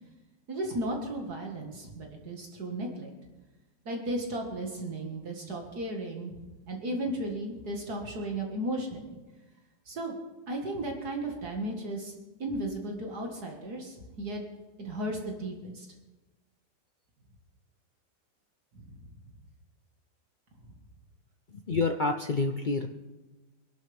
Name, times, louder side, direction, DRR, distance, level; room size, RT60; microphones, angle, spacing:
voice 1, 0.5-3.1 3.9-6.4 6.7-9.2 9.9-10.1 10.5-12.1 12.4-14.4 14.8-15.9 18.7-19.0, right 1 dB, 65° right, 0 dB, 2.3 m, -35 dB
voice 2, 21.5-22.9, left 3 dB, 85° left, 5 dB, 0.4 m, -28 dB
25.0 x 11.5 x 3.5 m, 1.1 s
omnidirectional pair, 1.8 m